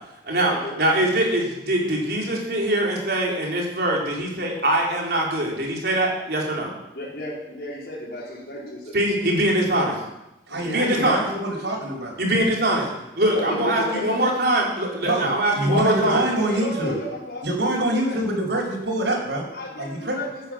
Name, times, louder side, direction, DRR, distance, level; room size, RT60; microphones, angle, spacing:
voice 1, 0.2-6.7 8.9-10.0 10.6-11.3 12.2-12.9 13.2-16.2, right 1 dB, 60° right, -2 dB, 4.2 m, -22 dB
voice 2, 6.9-9.2 10.5-10.6 11.9-12.0 13.3-14.1 15.7-18.2 19.5-20.4, left 1 dB, 65° left, -10 dB, 4.3 m, -33 dB
voice 3, 10.5-12.1 15.0-17.0 17.4-19.4 19.7-20.2, right 1 dB, 85° right, -2 dB, 4.9 m, -25 dB
13.5 x 9.7 x 7.6 m, 0.93 s
head